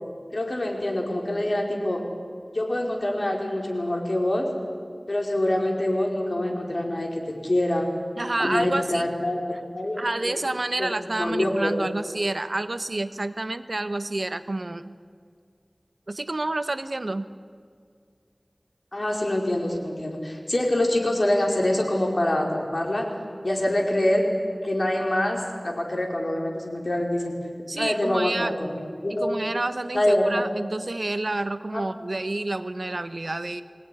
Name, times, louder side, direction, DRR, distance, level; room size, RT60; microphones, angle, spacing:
voice 1, 0.3-2.0 2.5-4.5 5.1-7.9 8.4-10.3 10.8-10.9 11.2-11.7 18.9-23.1 23.4-24.3 24.6-27.3 27.7-29.3 29.9-30.5 31.7-31.8, left 1 dB, 60° left, 0 dB, 4.5 m, -25 dB
voice 2, 8.2-9.1 10.0-14.9 16.1-17.3 27.7-28.5 29.1-33.6, right 2 dB, 65° right, 11 dB, 1.1 m, -29 dB
23.5 x 18.0 x 9.9 m, 2.1 s
wide cardioid pair, 45°, 0 cm